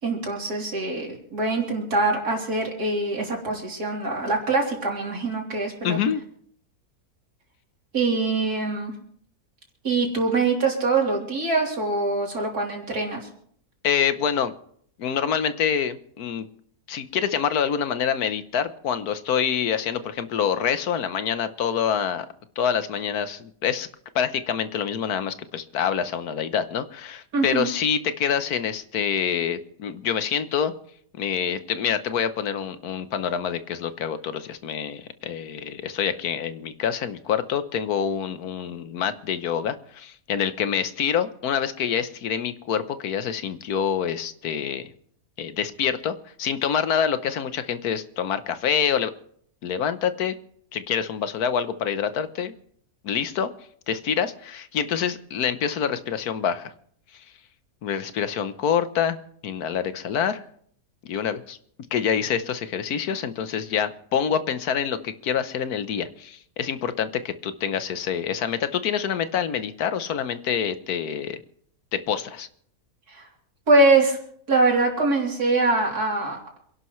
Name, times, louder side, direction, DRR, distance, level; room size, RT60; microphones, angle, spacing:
voice 1, 0.0-6.0 7.9-8.9 9.8-13.3 27.3-27.7 73.1-73.2 73.7-74.2 74.5-76.6, right 3 dB, 85° right, 0 dB, 3.8 m, -23 dB
voice 2, 5.8-6.2 13.8-14.5 15.0-16.5 16.9-22.3 22.6-23.9 24.1-30.7 31.2-44.9 45.4-49.1 49.6-50.3 50.7-52.5 53.0-53.5 53.9-56.7 57.1-57.2 57.8-59.2 59.4-60.4 61.0-61.6 61.9-71.4 71.9-72.5, left 8 dB, 80° left, 12 dB, 1.4 m, -26 dB
27.0 x 11.5 x 3.2 m, 0.63 s
omnidirectional pair, 1.6 m